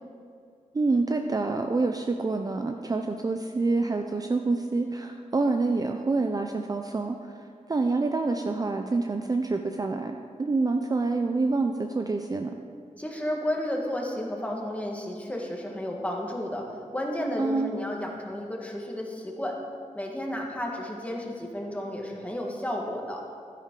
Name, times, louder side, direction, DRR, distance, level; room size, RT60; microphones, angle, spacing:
voice 1, 0.7-7.3 7.7-12.5 17.4-17.7, right 3 dB, 30° right, 5 dB, 0.4 m, -27 dB
voice 2, 13.0-19.6 19.9-23.2, left 1 dB, 10° left, -1 dB, 1.5 m, -32 dB
12.5 x 10.0 x 3.8 m, 2.4 s
wide cardioid pair, 135°, 13 cm